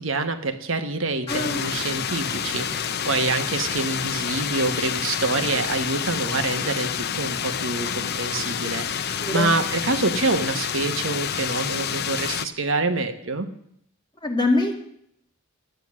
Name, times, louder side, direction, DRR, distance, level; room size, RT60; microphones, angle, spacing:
voice 1, 0.0-13.5, right 3 dB, 65° right, 8 dB, 1.2 m, -26 dB
sound 1, 1.3-12.5, left 8 dB, 50° left, 0.6 m, -28 dB
voice 2, 1.3-1.7 9.2-9.5 14.2-14.7, left 2 dB, 20° left, 1 dB, 2.1 m, -23 dB
12.0 x 9.6 x 7.5 m, 0.70 s
head